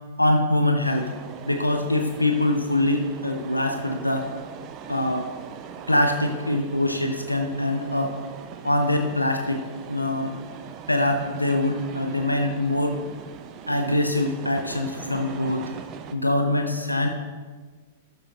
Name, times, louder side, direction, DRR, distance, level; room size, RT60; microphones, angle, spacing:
voice 1, 0.2-1.1 1.4-4.3 4.9-5.3 5.9-8.2 8.6-10.4 10.9-13.0 13.7-15.8 16.1-17.1, left 1 dB, 85° left, 5 dB, 0.7 m, -24 dB
sound 1, 0.8-16.2, right 8 dB, 35° right, 0.6 m, -41 dB
12.0 x 8.0 x 2.9 m, 1.4 s
figure-of-eight pair, 100°, 0 cm